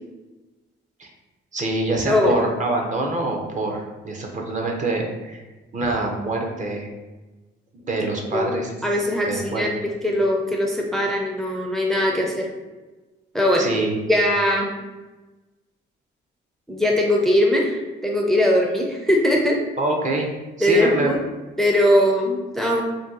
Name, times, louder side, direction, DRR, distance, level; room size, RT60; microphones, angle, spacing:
voice 1, 1.5-5.4 5.7-6.9 7.7-8.7 9.3-9.7 13.6-14.0 19.8-20.3 20.6-21.1, right 2 dB, 40° right, 1 dB, 0.7 m, -25 dB
voice 2, 2.1-2.4 8.3-8.5 8.8-9.7 10.0-12.5 13.3-13.7 14.1-14.7 16.7-19.6 20.6-21.2 21.6-22.8, left 1 dB, ahead, -1 dB, 0.5 m, -20 dB
2.7 x 2.2 x 3.7 m, 1.2 s
cardioid pair, 90°, 20 cm